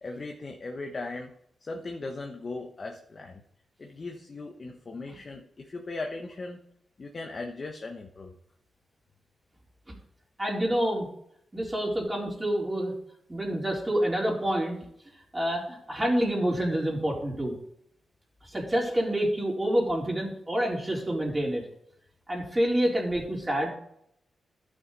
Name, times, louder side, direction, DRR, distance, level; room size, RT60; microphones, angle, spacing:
voice 1, 0.0-1.3 1.6-3.4 3.8-6.6 7.0-8.3, left 3 dB, 40° left, 2 dB, 1.2 m, -38 dB
voice 2, 10.4-11.1 11.5-12.9 13.3-14.8 15.3-17.5 18.4-21.6 22.3-23.7, right 1 dB, 20° right, -3 dB, 3.7 m, -27 dB
13.0 x 6.2 x 4.1 m, 0.71 s
cardioid pair, 90°, 0 cm